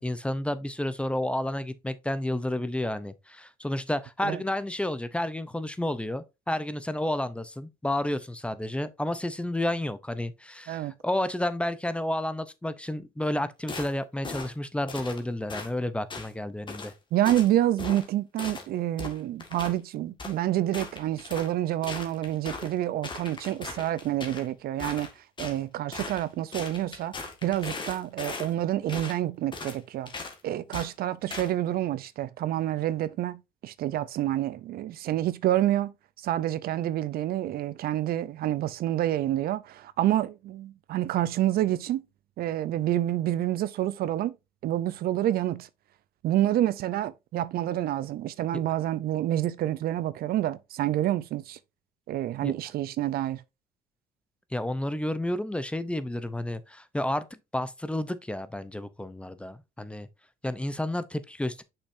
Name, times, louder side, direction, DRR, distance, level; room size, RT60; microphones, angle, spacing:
voice 1, 0.0-16.9 52.4-52.5 54.5-60.1 60.4-61.6, left 1 dB, 5° left, 0.6 m, -31 dB
sound 1, 13.7-13.9 14.2-14.5 14.9-15.2 15.5-15.7 16.1-16.3 16.7-16.9 17.3-17.5 17.8-18.1 18.4-18.7 19.0-19.8 20.2-20.4 20.7-21.5 21.8-22.7 23.0-24.5 24.8-25.6 25.9-26.2 26.5-28.5 28.9-29.2 29.5-29.8 30.1-30.4 30.7-30.9 31.3-31.5, left 4 dB, 30° left, 1.8 m, -38 dB
voice 2, 17.1-25.1 25.4-27.2 27.4-30.1 30.4-35.9 36.2-42.0 42.4-44.3 44.6-45.7 46.2-51.6 52.1-53.4, right 13 dB, 65° right, 0.5 m, -28 dB
6.6 x 5.7 x 2.6 m
cardioid pair, 110°, 17 cm